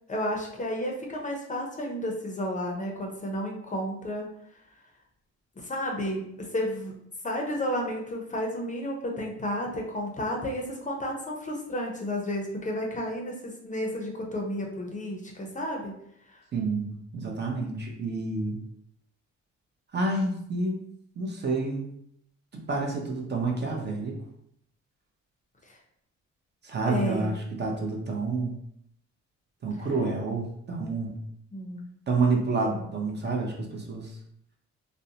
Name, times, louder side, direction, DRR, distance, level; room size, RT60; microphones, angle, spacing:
voice 1, 0.1-4.3 5.6-16.0 16.3-16.4 25.7-25.8 26.9-27.3 31.5-31.9, equal, 25° left, 0 dB, 0.5 m, -32 dB
voice 2, 16.5-18.6 19.9-20.8 21.2-21.9 22.5-24.2 26.6-28.6 29.6-31.2 32.1-34.2, right 3 dB, 35° right, 0 dB, 0.6 m, -29 dB
2.5 x 2.1 x 2.7 m, 0.73 s
cardioid pair, 90°, 30 cm